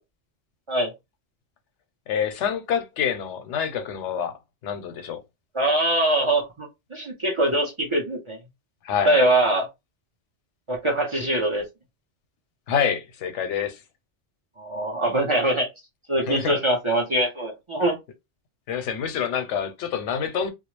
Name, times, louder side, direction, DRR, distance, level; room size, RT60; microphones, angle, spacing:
voice 1, 2.1-4.4 4.6-5.2 8.8-9.2 12.7-13.8 16.3-16.6 18.7-20.5, left 7 dB, 90° left, 0.9 m, -27 dB
voice 2, 5.5-8.4 9.1-9.7 10.7-11.6 14.6-15.7 16.1-18.0, right 1 dB, 35° right, 0.6 m, -23 dB
2.3 x 2.0 x 3.0 m
omnidirectional pair, 1.2 m